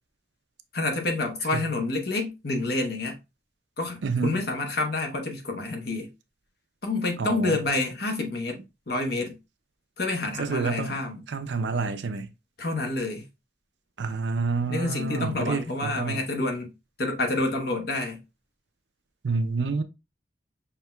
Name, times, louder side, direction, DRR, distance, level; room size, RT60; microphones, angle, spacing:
voice 1, 0.7-3.2 3.8-6.1 6.8-8.6 8.9-9.4 10.0-11.2 12.6-13.3 14.7-16.7 17.0-18.2, left 2 dB, 60° left, 1.0 m, -28 dB
voice 2, 4.0-4.4 7.2-7.6 10.4-11.0 11.3-12.3 14.0-16.2 19.2-19.8, right 4 dB, 85° right, 0.5 m, -28 dB
5.8 x 2.8 x 2.2 m
head